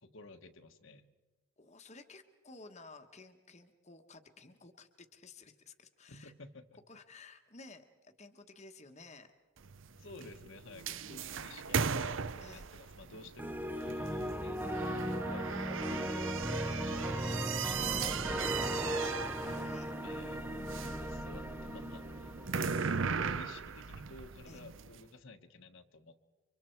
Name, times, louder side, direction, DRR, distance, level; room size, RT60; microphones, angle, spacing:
voice 1, 0.0-1.1 6.0-6.7 10.0-16.4 16.8-19.3 20.0-26.2, left 3 dB, 60° left, 6 dB, 1.3 m, -53 dB
voice 2, 1.6-6.3 6.9-9.3 10.8-12.1 12.4-12.7 16.7-16.9 18.2-19.9 22.5-23.0 24.5-24.6, left 3 dB, 30° left, 6 dB, 1.2 m, -55 dB
sound 1, 9.6-25.0, right 6 dB, 60° right, 0.7 m, -38 dB
sound 2, 13.4-23.4, equal, 10° right, 0.7 m, -37 dB
29.5 x 25.5 x 4.5 m, 1.2 s
head